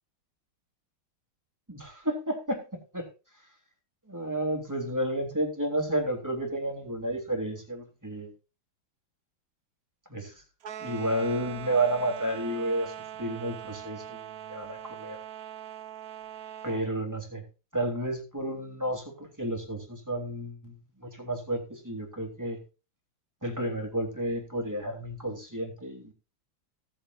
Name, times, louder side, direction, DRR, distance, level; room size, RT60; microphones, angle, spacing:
voice 1, 1.7-2.6 2.9-3.0 4.1-8.3 10.1-10.3 10.8-12.9 13.2-15.2 16.6-17.4 17.7-20.8 21.0-22.6 23.4-26.1, right 1 dB, 10° right, 2 dB, 3.0 m, -31 dB
sound 1, 10.6-16.9, right 10 dB, 60° right, 1.0 m, -41 dB
17.5 x 9.0 x 2.5 m, 0.31 s
omnidirectional pair, 2.2 m